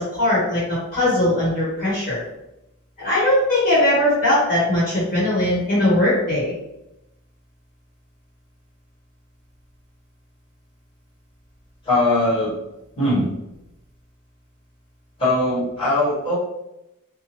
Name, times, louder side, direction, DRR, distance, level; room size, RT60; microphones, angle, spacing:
voice 1, 0.0-2.2 3.0-6.5, left 1 dB, 40° left, -9 dB, 1.1 m, -20 dB
voice 2, 11.8-12.5 13.0-13.3 15.2-16.4, left 1 dB, 25° left, -9 dB, 1.2 m, -20 dB
2.7 x 2.2 x 3.0 m, 0.90 s
head